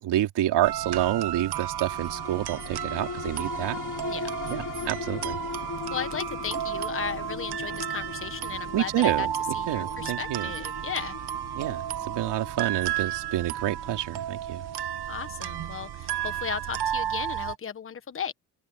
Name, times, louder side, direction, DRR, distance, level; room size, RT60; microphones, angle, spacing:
voice 1, 0.0-3.8 4.5-5.4 8.7-9.3 9.7-10.5 11.5-14.6, right 13 dB, 85° right, 3.1 m, -28 dB
sound 1, 0.6-17.6, right 11 dB, 70° right, 1.3 m, -33 dB
sound 2, 1.7-16.4 16.8-16.9, left 6 dB, 50° left, 3.0 m, -40 dB
voice 2, 5.9-9.3 9.5-11.1 15.1-18.3, left 7 dB, 30° left, 1.3 m, -35 dB
open air
cardioid pair, 105°, 41 cm